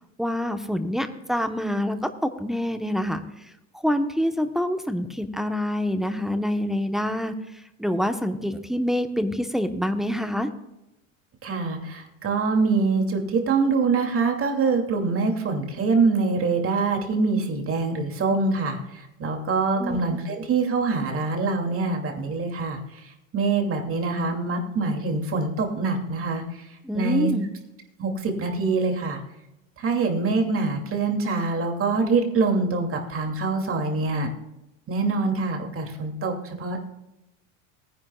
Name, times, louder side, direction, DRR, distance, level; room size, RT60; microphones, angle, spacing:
voice 1, 0.2-3.2 3.7-10.5 19.8-20.0 26.8-27.5, equal, ahead, 8 dB, 1.0 m, -26 dB
voice 2, 11.4-23.0 23.3-26.7 26.9-27.3 28.0-29.2 29.8-34.3 34.9-36.8, right 4 dB, 35° right, 3 dB, 2.6 m, -24 dB
19.5 x 10.0 x 2.4 m, 0.92 s
supercardioid pair, 105°, 40 cm